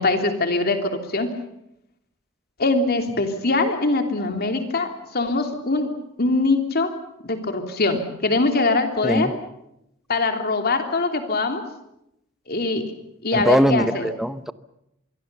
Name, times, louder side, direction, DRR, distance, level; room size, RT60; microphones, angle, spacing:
voice 1, 0.0-1.3 2.6-5.9 6.2-6.9 7.2-9.3 10.1-11.6 12.5-12.8 13.2-14.1, left 3 dB, 50° left, 5 dB, 3.1 m, -22 dB
voice 2, 13.3-14.5, equal, ahead, 13 dB, 0.8 m, -21 dB
25.5 x 22.5 x 6.9 m, 0.82 s
head